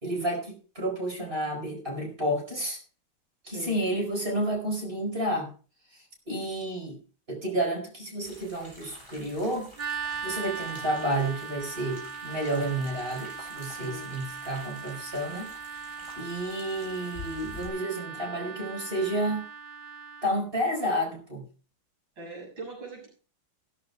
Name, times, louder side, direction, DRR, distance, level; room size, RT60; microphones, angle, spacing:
voice 1, 0.0-2.8 3.5-5.5 6.3-7.0 7.3-9.7 10.2-15.8 16.2-19.5 20.2-21.4, right 1 dB, 30° right, 0 dB, 4.9 m, -30 dB
voice 2, 3.4-3.8 13.7-14.1 22.2-23.1, right 2 dB, 90° right, -2 dB, 7.9 m, -41 dB
sound 1, 8.2-17.7, left 1 dB, 15° right, 7.4 m, -49 dB
sound 2, 9.8-20.4, right 6 dB, 60° right, 2.8 m, -39 dB
16.0 x 14.5 x 2.3 m, 0.37 s
omnidirectional pair, 2.1 m